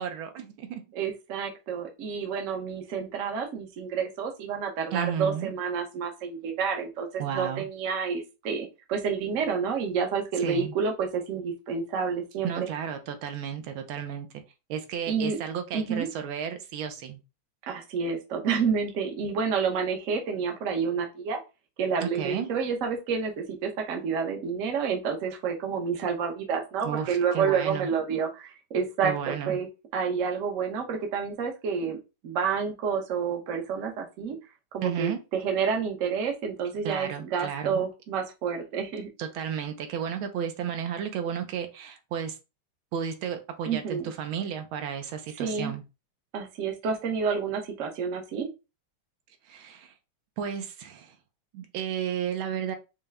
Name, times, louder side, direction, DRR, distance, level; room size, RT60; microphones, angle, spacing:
voice 1, 0.0-0.8 4.9-5.5 7.2-7.7 10.4-10.7 12.4-14.3 14.7-17.2 22.0-22.5 26.8-27.9 29.0-29.6 34.8-35.2 36.8-37.9 39.2-42.4 42.9-45.8 49.5-49.9 50.4-51.1 51.5-52.8, right 8 dB, 80° right, 7 dB, 1.5 m, -33 dB
voice 2, 0.9-12.7 15.1-15.4 15.7-16.1 17.7-21.4 21.8-29.7 29.9-32.0 32.2-34.4 34.7-39.1 43.6-44.0 45.4-45.7 46.3-48.5, right 6 dB, 55° right, 2 dB, 1.0 m, -29 dB
5.5 x 2.1 x 3.4 m, 0.27 s
omnidirectional pair, 2.2 m